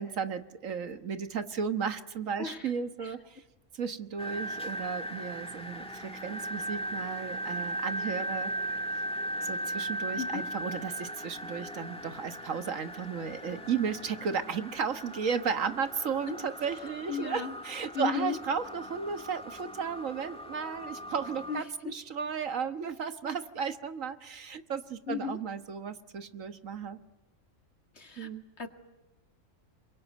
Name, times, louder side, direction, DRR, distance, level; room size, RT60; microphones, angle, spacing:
voice 1, 0.0-3.4 3.7-8.5 9.4-27.0 28.2-28.4, right 6 dB, 75° right, 10 dB, 1.7 m, -34 dB
voice 2, 2.4-2.7 3.0-3.1 10.1-10.4 17.1-17.6 17.9-18.4 21.5-21.6 25.1-25.4 28.0-28.3 28.6-28.7, left 6 dB, 55° left, 6 dB, 2.3 m, -34 dB
sound 1, 4.2-21.6, right 1 dB, 5° left, 1.8 m, -38 dB
27.5 x 23.0 x 9.3 m, 1.0 s
omnidirectional pair, 1.4 m